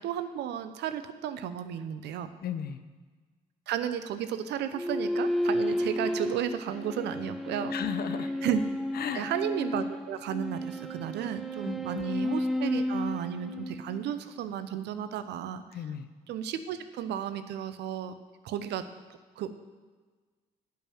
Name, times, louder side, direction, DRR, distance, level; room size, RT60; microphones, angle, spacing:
voice 1, 0.0-2.3 3.7-7.7 8.4-8.6 9.1-15.6 16.3-18.1 18.4-18.8 19.4-19.5, right 9 dB, 70° right, 11 dB, 0.7 m, -33 dB
voice 2, 2.4-2.8 7.7-8.3 8.9-9.3 11.6-12.0 15.7-16.1, left 8 dB, 60° left, 10 dB, 0.8 m, -34 dB
sound 1, 4.7-14.4, left 1 dB, ahead, 1.0 m, -32 dB
10.5 x 5.7 x 7.5 m, 1.4 s
hypercardioid pair, 45°, 18 cm